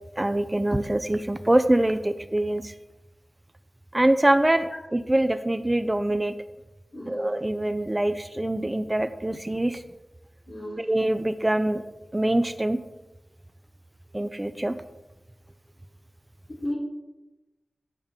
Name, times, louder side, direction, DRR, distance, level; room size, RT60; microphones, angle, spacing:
voice 1, 0.2-2.7 3.9-6.3 7.1-9.8 10.8-11.8 12.1-12.8 14.1-14.7, right 1 dB, 20° right, 10 dB, 0.5 m, -24 dB
voice 2, 6.9-7.3 10.5-10.8 16.6-16.8, left 1 dB, 60° left, -5 dB, 3.6 m, -33 dB
10.5 x 7.1 x 3.6 m, 1.0 s
wide cardioid pair, 85°, 0 cm